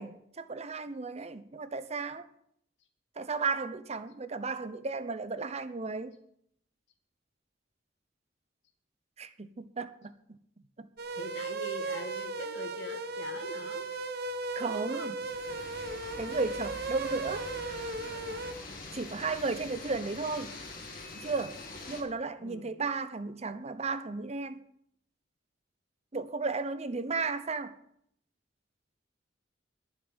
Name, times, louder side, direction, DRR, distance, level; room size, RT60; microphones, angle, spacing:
voice 1, 0.0-2.3 3.2-6.2 9.2-10.4 10.8-10.9 14.6-15.1 16.2-17.9 18.9-20.5 21.1-21.6 21.9-24.6 26.1-27.7, right 4 dB, 35° right, 0.8 m, -34 dB
sound 1, 11.0-18.5, right 3 dB, 60° right, 1.1 m, -36 dB
voice 2, 11.2-13.9 14.7-15.1 22.4-22.8, left 1 dB, 70° left, 1.8 m, -43 dB
sound 2, 15.2-22.0, left 2 dB, 50° left, 2.6 m, -44 dB
21.0 x 7.4 x 5.3 m
head